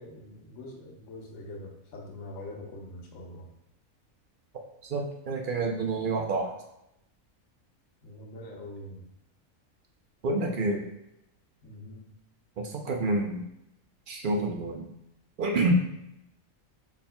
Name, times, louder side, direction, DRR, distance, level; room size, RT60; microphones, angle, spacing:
voice 1, 0.0-3.5 8.0-9.1 11.6-12.1, left 1 dB, 75° left, -1 dB, 1.3 m, -43 dB
voice 2, 4.8-6.5 10.2-10.8 12.6-13.4 14.1-14.9 15.4-15.7, right 2 dB, 55° right, 2 dB, 0.6 m, -28 dB
6.8 x 3.6 x 2.2 m, 0.82 s
omnidirectional pair, 1.4 m